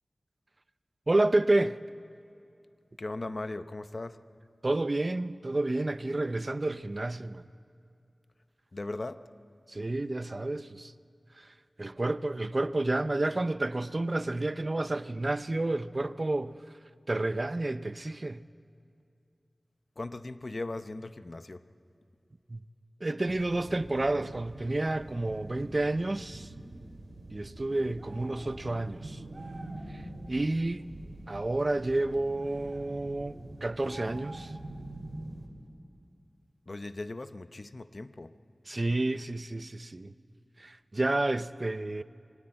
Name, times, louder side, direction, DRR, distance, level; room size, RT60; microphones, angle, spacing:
voice 1, 1.1-1.8 4.6-7.4 9.7-10.9 11.4-11.5 11.8-16.6 17.1-18.4 22.5-22.6 23.0-26.5 27.3-29.2 29.9-30.0 30.3-30.9 31.3-34.5 38.7-40.1 40.6-42.0, right 2 dB, 45° right, 0.6 m, -30 dB
voice 2, 3.0-4.2 8.7-9.2 20.0-21.6 36.7-38.3, left 2 dB, 50° left, 0.8 m, -38 dB
sound 1, 23.3-35.5, right 2 dB, 85° right, 2.7 m, -45 dB
sound 2, 28.0-28.5 29.3-29.9 32.4-32.9 33.9-34.7, right 2 dB, 60° right, 4.8 m, -49 dB
23.0 x 17.5 x 8.9 m
wide cardioid pair, 50°, 0 cm